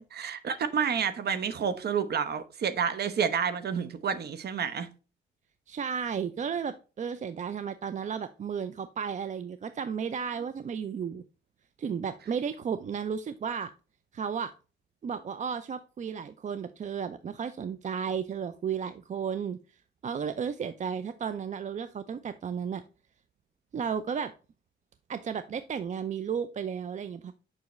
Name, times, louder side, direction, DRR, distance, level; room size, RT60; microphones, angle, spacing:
voice 1, 0.0-4.9, right 7 dB, 55° right, 0.9 m, -29 dB
voice 2, 5.7-11.2 11.8-13.7 14.1-14.5 15.0-19.6 20.0-22.8 23.7-24.3 25.1-27.3, right 7 dB, 40° right, 0.5 m, -33 dB
7.2 x 5.7 x 3.1 m
cardioid pair, 90°, 20 cm